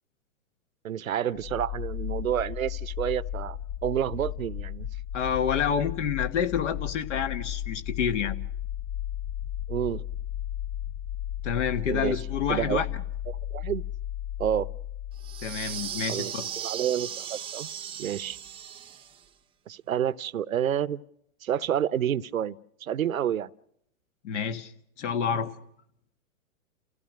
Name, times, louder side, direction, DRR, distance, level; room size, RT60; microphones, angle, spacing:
voice 1, 0.8-4.9 9.7-10.0 11.9-12.2 12.5-12.9 13.3-13.8 14.4-14.7 16.1-17.7 18.0-18.4 19.7-21.0 21.4-23.5, right 10 dB, 80° right, 0.8 m, -29 dB
sound 1, 1.3-16.1, left 11 dB, 40° left, 1.2 m, -35 dB
voice 2, 5.1-8.4 11.4-12.9 15.4-16.5 24.2-24.7 25.0-25.5, left 7 dB, 60° left, 1.7 m, -28 dB
sound 2, 15.2-19.2, right 9 dB, 15° right, 0.8 m, -37 dB
30.0 x 16.0 x 6.3 m
hypercardioid pair, 115°, 41 cm